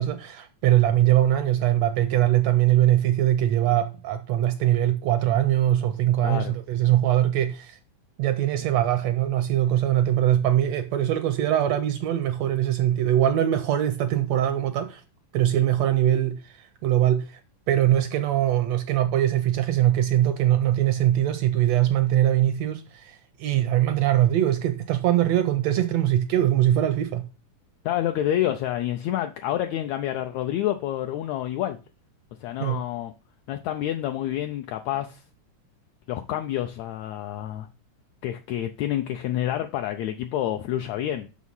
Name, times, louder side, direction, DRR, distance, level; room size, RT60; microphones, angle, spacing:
voice 1, 0.0-7.8 8.2-15.0 15.3-17.4 17.7-27.2 32.6-32.8, right 12 dB, 80° right, 1.6 m, -22 dB
voice 2, 6.2-6.5 27.8-31.8 32.4-33.1 33.5-35.2 36.1-37.7 38.2-41.3, left 12 dB, 80° left, 1.7 m, -28 dB
6.4 x 5.9 x 5.5 m
omnidirectional pair, 3.5 m